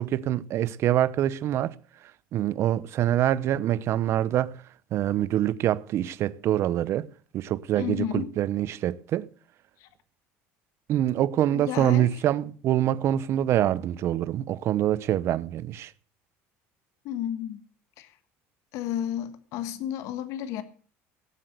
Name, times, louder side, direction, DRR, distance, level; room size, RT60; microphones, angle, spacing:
voice 1, 0.0-1.8 2.3-4.6 4.9-7.1 7.3-9.3 10.9-15.9, right 12 dB, 50° right, 0.9 m, -25 dB
voice 2, 7.7-8.3 9.8-9.9 11.5-12.1 17.0-17.6 18.0-18.1 18.7-20.6, left 11 dB, 65° left, 1.6 m, -32 dB
18.0 x 7.8 x 6.7 m
cardioid pair, 120°, 6 cm